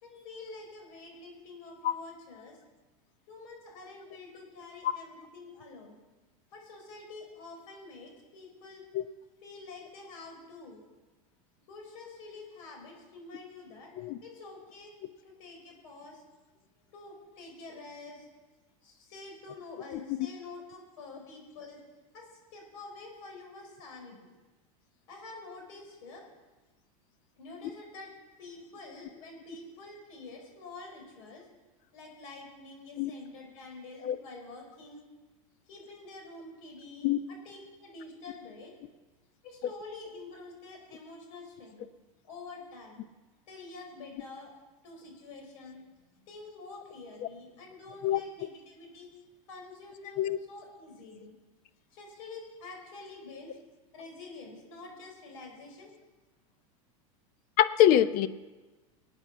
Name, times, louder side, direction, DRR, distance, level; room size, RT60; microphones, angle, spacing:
voice 1, 0.0-2.6 3.3-6.0 6.5-8.8 9.4-10.8 11.7-13.9 14.2-14.9 15.2-16.3 16.9-18.3 18.8-21.8 22.1-24.3 25.1-26.2 27.4-28.1 28.4-31.5 31.9-35.0 35.7-37.1 37.4-38.7 39.4-41.8 42.2-43.0 43.5-44.5 44.8-45.9 46.3-49.1 49.5-51.3 51.9-53.5 53.9-55.9, left 3 dB, 65° left, 1 dB, 5.0 m, -47 dB
voice 2, 57.6-58.3, left 11 dB, 50° left, 13 dB, 0.8 m, -24 dB
19.0 x 8.9 x 5.7 m, 1.2 s
hypercardioid pair, 110°, 18 cm